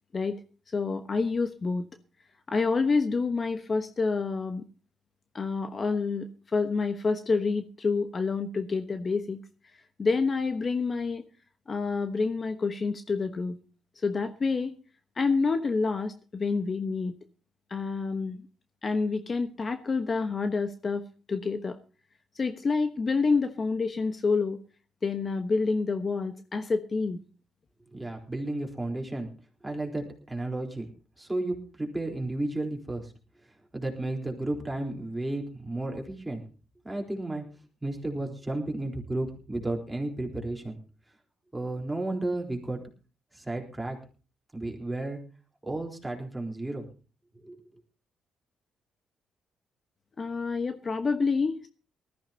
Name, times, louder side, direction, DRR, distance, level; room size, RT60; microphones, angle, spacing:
voice 1, 0.7-1.9 2.5-4.7 5.3-9.4 10.0-11.2 11.7-13.6 14.0-14.8 15.2-17.1 17.7-18.4 18.8-21.8 22.3-24.6 25.0-27.2 50.2-51.7, left 4 dB, 40° left, 8 dB, 1.1 m, -28 dB
voice 2, 27.9-29.3 29.6-30.9 31.2-33.1 33.7-36.4 36.8-37.4 37.8-40.8 41.5-42.8 43.3-44.0 44.5-45.2 45.6-46.9 47.4-47.6, right 2 dB, 10° right, 1 dB, 3.9 m, -33 dB
19.5 x 14.0 x 2.9 m, 0.36 s
cardioid pair, 85°, 0 cm